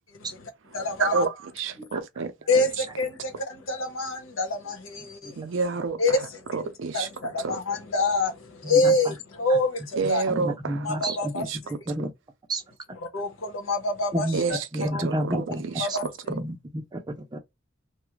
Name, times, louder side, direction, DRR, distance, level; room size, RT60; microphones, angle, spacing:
voice 1, 0.2-1.2 2.5-5.4 6.0-6.2 6.9-10.2 10.8-11.4 13.1-14.6 14.9-15.0 15.8-16.0, left 2 dB, 90° left, 0.9 m, -26 dB
voice 2, 0.7-2.9 5.4-6.2 6.5-7.1 7.4-7.6 10.0-11.6 14.3-16.3, right 4 dB, 75° right, 0.5 m, -30 dB
voice 3, 8.6-9.2 10.0-11.3 11.9-12.1 12.5-12.6 14.1-14.4 14.7-16.0 16.3-17.4, right 1 dB, 20° right, 0.5 m, -30 dB
2.3 x 2.1 x 3.0 m
head